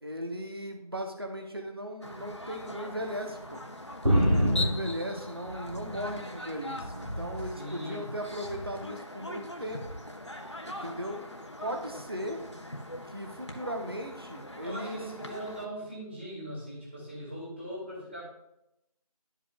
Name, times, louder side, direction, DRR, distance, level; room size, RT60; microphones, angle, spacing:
voice 1, 0.0-3.6 4.3-9.9 10.7-11.2 11.6-12.4 13.1-15.0, equal, 40° right, 3 dB, 0.9 m, -37 dB
sound 1, 2.0-15.7, left 2 dB, 45° left, 0.9 m, -42 dB
sound 2, 4.0-6.3 6.6-7.6 8.4-8.8 9.8-10.0, equal, 65° right, 2.3 m, -28 dB
voice 2, 7.5-8.1 14.6-18.2, equal, 20° right, -7 dB, 1.8 m, -40 dB
12.0 x 4.9 x 2.3 m, 0.84 s
figure-of-eight pair, 175°, 20 cm